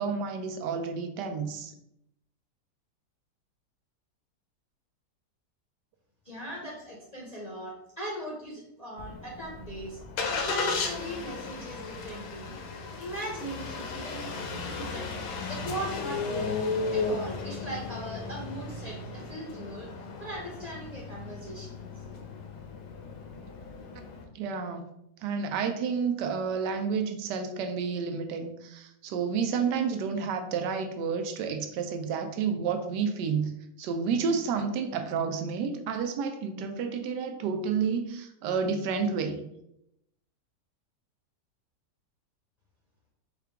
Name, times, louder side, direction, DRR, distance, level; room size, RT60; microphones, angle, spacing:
voice 1, 0.0-1.7 24.3-24.9 25.2-33.5 33.8-39.4, right 6 dB, 85° right, 7 dB, 1.2 m, -30 dB
voice 2, 6.2-10.0 10.4-12.5 13.0-15.2 15.5-19.9 20.2-21.9, right 1 dB, 40° left, -4 dB, 0.6 m, -39 dB
Engine starting, 9.0-24.2, left 4 dB, 80° left, 1.2 m, -35 dB
4.7 x 2.4 x 3.4 m, 0.79 s
omnidirectional pair, 1.8 m